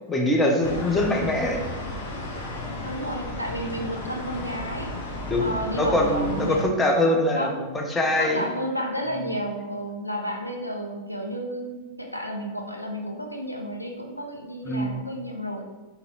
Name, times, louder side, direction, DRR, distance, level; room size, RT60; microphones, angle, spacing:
voice 1, 0.1-1.6 5.3-8.4 14.7-15.0, left 1 dB, 15° left, 1 dB, 0.6 m, -23 dB
sound 1, 0.6-6.6, left 2 dB, 60° left, 0.7 m, -34 dB
voice 2, 2.8-4.9 5.4-6.7 7.3-7.6 8.2-15.6, equal, 90° left, 1 dB, 0.3 m, -32 dB
4.0 x 2.7 x 2.8 m, 1.2 s
figure-of-eight pair, 90°, 0 cm